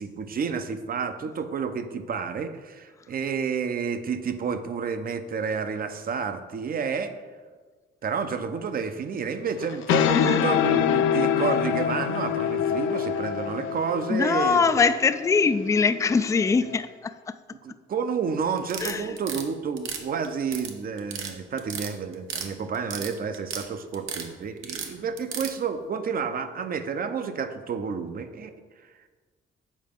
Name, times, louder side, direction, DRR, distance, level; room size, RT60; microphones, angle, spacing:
voice 1, 0.0-7.1 8.0-14.9 17.6-28.5, right 6 dB, 45° right, 9 dB, 0.7 m, -30 dB
sound 1, 9.6-16.8, left 8 dB, 80° left, 0.5 m, -26 dB
voice 2, 14.1-17.3 18.8-19.2, left 5 dB, 15° left, 11 dB, 0.3 m, -23 dB
sound 2, 18.6-19.4 19.8-20.7 21.0-21.3 21.6-22.5 22.7-23.7 23.9-24.3 24.6-25.5, right 7 dB, 80° right, 0.9 m, -34 dB
7.4 x 4.6 x 5.2 m, 1.4 s
cardioid pair, 90°, 20 cm